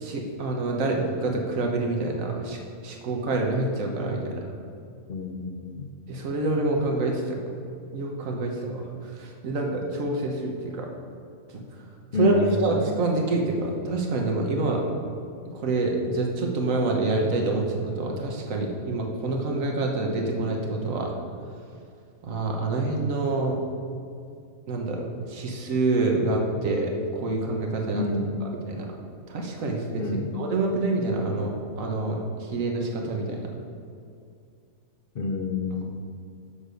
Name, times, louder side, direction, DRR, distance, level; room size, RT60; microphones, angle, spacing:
voice 1, 0.0-4.4 6.1-7.4 7.9-8.8 9.2-10.9 11.5-11.6 12.1-14.8 15.5-21.1 22.2-23.6 24.7-28.0 28.5-28.9 29.3-30.0 30.3-33.5, right 2 dB, 65° right, 1 dB, 1.4 m, -27 dB
voice 2, 5.1-5.9 12.1-12.6 27.9-28.3 30.0-30.3 35.1-35.9, left 4 dB, 50° left, 3 dB, 0.7 m, -28 dB
7.2 x 6.5 x 5.1 m, 2.4 s
omnidirectional pair, 1.5 m